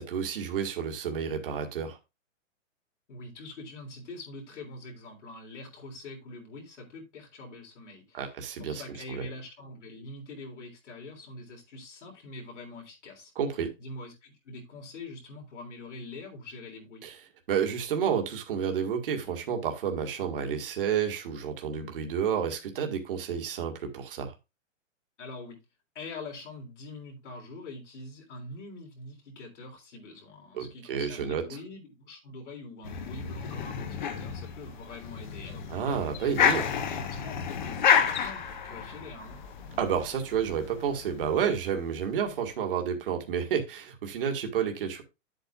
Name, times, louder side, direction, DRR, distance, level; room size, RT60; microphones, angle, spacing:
voice 1, 0.0-2.0 8.1-8.8 9.1-9.3 13.4-13.7 17.0-17.2 17.5-24.3 30.5-31.4 35.7-36.6 39.8-45.0, right 7 dB, 45° right, 1.9 m, -30 dB
voice 2, 3.1-8.3 8.6-13.3 13.8-17.0 25.2-25.6 26.0-35.9 36.3-36.5 36.9-37.0 37.4-39.4, left 2 dB, 65° left, 3.6 m, -44 dB
sound 1, 32.8-42.0, left 7 dB, 35° left, 1.1 m, -30 dB
10.0 x 8.0 x 2.4 m
hypercardioid pair, 180°, 38 cm